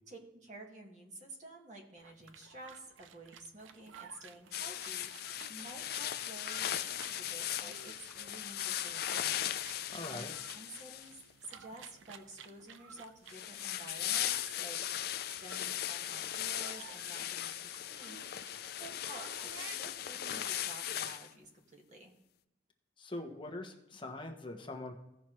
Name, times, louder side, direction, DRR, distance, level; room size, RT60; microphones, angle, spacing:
voice 1, 0.1-10.3 10.5-18.2 18.7-22.1, right 2 dB, 40° right, 0 dB, 1.8 m, -52 dB
sound 1, 2.0-20.1, right 7 dB, 90° right, 0.6 m, -55 dB
sound 2, 4.5-11.3 13.3-21.3, left 11 dB, 50° left, 0.4 m, -38 dB
voice 2, 9.9-10.3 23.0-24.9, left 2 dB, 25° left, 3 dB, 1.1 m, -43 dB
16.5 x 6.0 x 3.1 m, 0.91 s
head